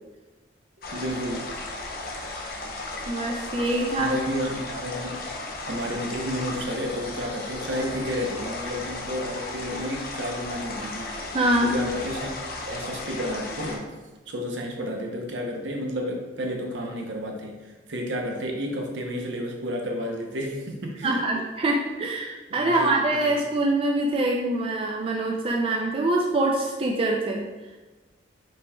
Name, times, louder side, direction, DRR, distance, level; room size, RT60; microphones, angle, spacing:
sound 1, 0.8-13.8, left 2 dB, 50° left, 0.6 m, -35 dB
voice 1, 0.9-1.5 4.0-5.2 5.7-11.4 11.6-12.3 12.7-13.9 14.3-21.2 22.5-23.3, equal, 70° right, 1 dB, 0.7 m, -31 dB
voice 2, 3.1-4.2 11.3-11.8 21.0-27.4, right 2 dB, 30° right, 0 dB, 0.3 m, -24 dB
5.2 x 4.1 x 2.2 m, 1.2 s
head